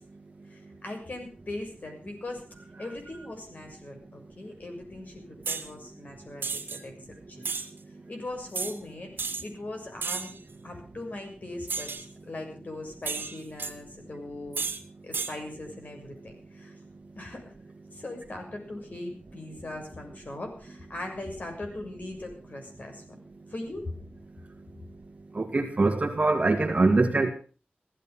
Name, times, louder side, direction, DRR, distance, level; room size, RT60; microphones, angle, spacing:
voice 1, 0.5-2.4 2.8-7.6 8.1-14.7 15.0-16.7 17.1-17.4 17.9-23.0 23.5-23.9, left 2 dB, 50° left, 3 dB, 6.6 m, -40 dB
Swords Clashing, 5.4-5.7 6.4-6.8 7.4-7.7 8.5-8.7 9.2-9.4 10.0-10.4 11.7-12.0 13.0-13.7 14.5-14.8 15.1-15.3, right 5 dB, 75° right, 2.0 m, -32 dB
voice 2, 25.4-27.3, right 3 dB, 40° right, 2 dB, 2.1 m, -23 dB
16.0 x 14.0 x 5.7 m, 0.38 s
wide cardioid pair, 110°, 4 cm